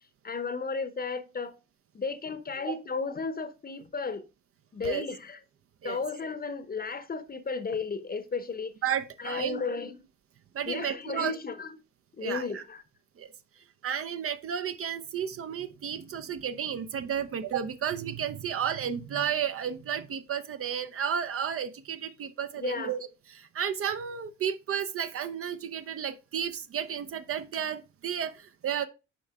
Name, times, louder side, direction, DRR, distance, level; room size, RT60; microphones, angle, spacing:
voice 1, 0.2-1.5 1.9-4.3 4.7-5.4 5.8-8.7 9.2-10.0 10.7-11.7 12.2-12.8 22.6-22.9, left 4 dB, 25° left, 0.9 m, -34 dB
voice 2, 8.8-9.6 10.5-11.3 12.2-12.6 13.2-13.3 13.8-23.0 23.3-28.9, right 8 dB, 40° right, 0.6 m, -32 dB
9.0 x 5.4 x 2.3 m
hypercardioid pair, 50°, 36 cm